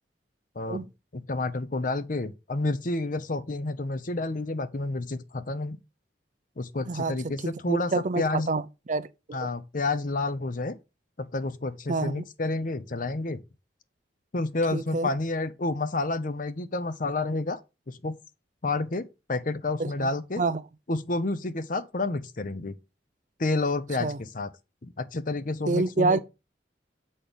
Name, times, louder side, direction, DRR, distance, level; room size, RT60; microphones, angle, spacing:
voice 1, 1.1-5.8 6.6-8.5 9.3-10.8 11.2-13.4 14.3-17.6 17.9-18.1 18.6-20.4 20.9-22.7 23.4-24.5 24.8-26.2, left 2 dB, 50° left, 0.8 m, -30 dB
voice 2, 7.7-8.6 8.9-9.5 11.9-12.2 14.7-15.1 19.8-20.1 20.4-20.6 24.0-24.2 25.7-26.2, right 3 dB, 45° right, 0.5 m, -27 dB
7.5 x 4.3 x 5.1 m
head